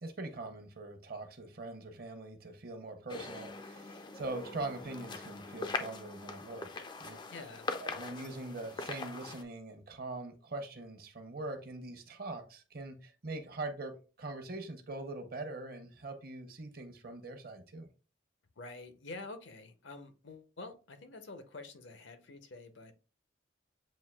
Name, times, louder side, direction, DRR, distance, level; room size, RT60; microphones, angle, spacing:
voice 1, 0.0-7.2 7.8-17.9, right 2 dB, 50° right, 0.7 m, -42 dB
sound 1, 3.1-9.4, left 3 dB, 25° left, 0.3 m, -42 dB
voice 2, 7.3-7.7 18.6-22.9, left 3 dB, 70° left, 0.7 m, -47 dB
7.4 x 2.6 x 2.2 m
head